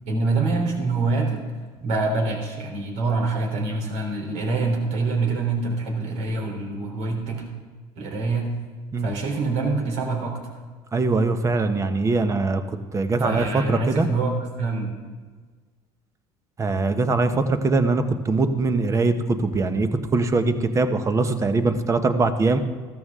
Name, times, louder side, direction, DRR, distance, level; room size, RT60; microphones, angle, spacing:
voice 1, 0.1-1.4 1.8-7.5 8.0-8.5 9.0-10.6 13.2-14.9, right 3 dB, 70° right, 1 dB, 3.6 m, -25 dB
voice 2, 10.9-14.1 16.6-22.6, right 3 dB, 25° right, 9 dB, 1.1 m, -22 dB
14.5 x 13.5 x 3.7 m, 1.4 s
supercardioid pair, 105°, 12 cm